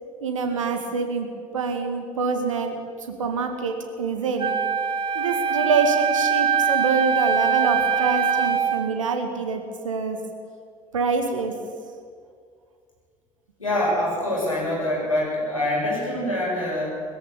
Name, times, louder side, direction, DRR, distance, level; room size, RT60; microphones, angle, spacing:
voice 1, 0.2-1.3 1.5-2.8 3.2-4.5 5.1-10.2 10.9-11.5, right 4 dB, 75° right, 5 dB, 2.3 m, -25 dB
Wind instrument woodwind instrument, 4.4-8.8, right 6 dB, 30° right, 1.6 m, -22 dB
voice 2, 13.6-17.0, left 1 dB, 85° left, -5 dB, 7.0 m, -25 dB
21.5 x 13.5 x 8.8 m, 2.1 s
figure-of-eight pair, 60°, 17 cm